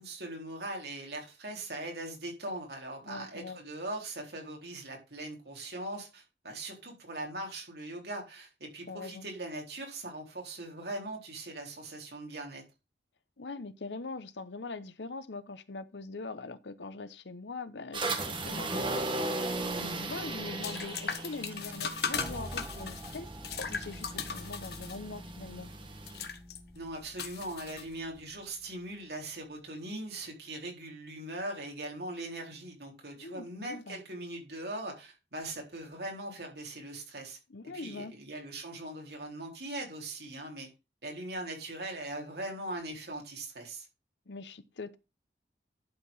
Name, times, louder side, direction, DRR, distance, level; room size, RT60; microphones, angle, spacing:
voice 1, 0.0-12.6 19.7-20.0 26.7-37.4 37.7-40.7 41.0-43.9, right 1 dB, 65° right, 4.0 m, -40 dB
voice 2, 3.0-3.6 8.9-9.3 13.4-25.7 33.2-34.0 37.5-38.1 44.3-45.0, left 3 dB, 85° left, 0.9 m, -42 dB
sound 1, 17.9-26.3, right 2 dB, 30° right, 1.4 m, -37 dB
sound 2, 19.4-28.3, left 6 dB, 65° left, 1.3 m, -39 dB
sound 3, 20.7-29.6, right 1 dB, 10° right, 0.8 m, -48 dB
11.5 x 4.8 x 5.5 m
head